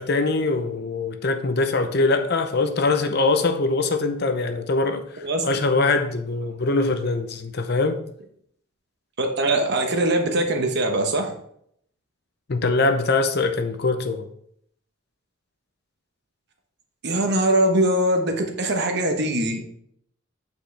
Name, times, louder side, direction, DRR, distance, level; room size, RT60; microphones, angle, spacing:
voice 1, 0.0-8.0 12.5-14.3, left 3 dB, 50° left, 0.6 m, -23 dB
voice 2, 9.2-11.3 17.0-19.6, right 1 dB, 50° right, 1.1 m, -22 dB
8.8 x 5.0 x 3.4 m
head